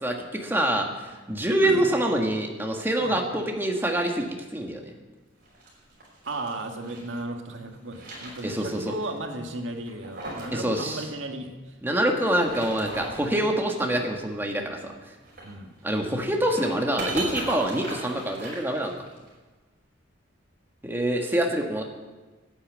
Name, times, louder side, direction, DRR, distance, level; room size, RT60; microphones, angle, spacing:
voice 1, 0.0-4.8 8.4-8.9 10.5-11.1 11.8-15.1 15.8-19.0 20.8-21.8, right 1 dB, 10° right, 2 dB, 1.5 m, -26 dB
sound 1, 5.4-7.2 7.6-8.9 9.2-9.3 9.8-10.6 10.8-10.9 12.2-13.3 15.2-19.3, right 2 dB, 50° right, 5.5 m, -38 dB
voice 2, 6.3-11.6 15.4-15.7, right 2 dB, 85° right, 4 dB, 1.7 m, -35 dB
11.5 x 9.0 x 8.5 m, 1.2 s
head